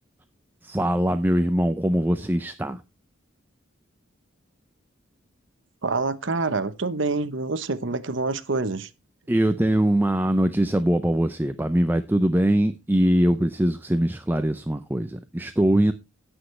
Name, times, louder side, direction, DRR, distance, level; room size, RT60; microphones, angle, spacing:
voice 1, 0.6-2.8 9.3-15.9, right 1 dB, 10° right, 0.5 m, -22 dB
voice 2, 5.8-8.9, right 3 dB, 65° right, 0.9 m, -26 dB
17.5 x 6.3 x 3.2 m
head